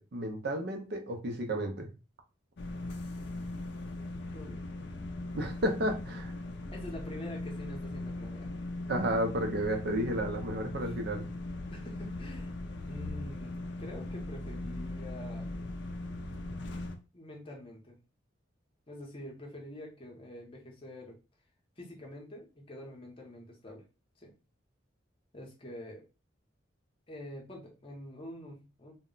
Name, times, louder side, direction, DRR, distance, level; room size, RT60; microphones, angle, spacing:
voice 1, 0.0-1.9 5.3-6.3 8.9-11.3, right 1 dB, 55° right, 4 dB, 0.5 m, -32 dB
sound 1, 2.6-17.0, left 2 dB, 60° left, 0.4 m, -39 dB
voice 2, 4.3-4.7 6.7-8.5 10.7-11.0 11.7-12.5 12.9-15.5 17.1-18.0 18.9-21.2 21.8-23.8 24.2-24.3 25.3-26.0 27.1-28.9, left 1 dB, 30° left, -1 dB, 0.7 m, -46 dB
2.1 x 2.0 x 3.7 m, 0.31 s
head